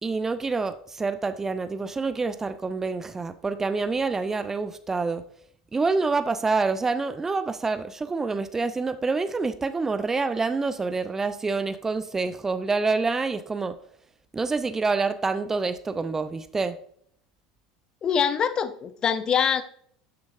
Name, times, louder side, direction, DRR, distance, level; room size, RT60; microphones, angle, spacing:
voice 1, 0.0-5.2 5.7-13.8 14.3-16.8, right 4 dB, 15° right, 12 dB, 0.6 m, -27 dB
voice 2, 18.0-19.6, left 7 dB, 35° left, 12 dB, 0.7 m, -24 dB
12.5 x 7.1 x 2.6 m, 0.63 s
figure-of-eight pair, 75°, 2 cm